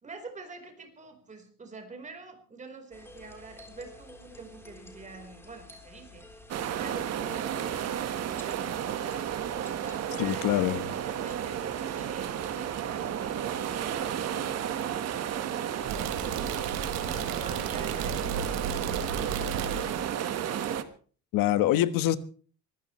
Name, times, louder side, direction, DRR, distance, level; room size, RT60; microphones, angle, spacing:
voice 1, 0.0-6.4 6.7-9.2 9.4-14.1 14.5-19.7, right 4 dB, 20° right, 4.4 m, -47 dB
sound 1, 2.9-14.0, left 2 dB, 5° left, 3.9 m, -51 dB
sound 2, 6.5-20.8, right 9 dB, 50° right, 1.6 m, -32 dB
voice 2, 10.2-10.8 21.3-22.2, left 13 dB, 90° left, 1.4 m, -24 dB
sound 3, 15.9-20.1, right 6 dB, 85° right, 3.7 m, -35 dB
24.0 x 15.5 x 3.2 m
cardioid pair, 155°, 33 cm